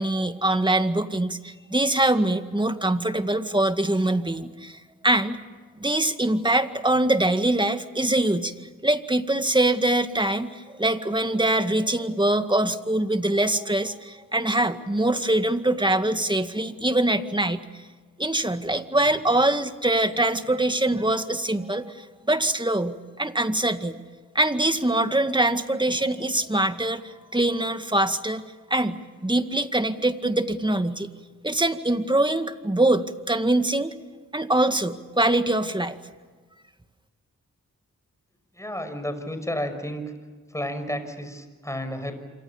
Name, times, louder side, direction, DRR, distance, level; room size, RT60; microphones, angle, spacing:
voice 1, 0.0-5.4 5.8-8.5 8.8-17.6 18.2-24.0 24.3-28.4 28.7-31.1 31.4-33.9 34.3-36.0, right 1 dB, 15° right, 9 dB, 2.0 m, -23 dB
voice 2, 38.5-40.0 40.5-42.1, left 1 dB, 10° left, 8 dB, 6.0 m, -31 dB
27.5 x 25.0 x 7.2 m, 1.4 s
cardioid pair, 60°, 33 cm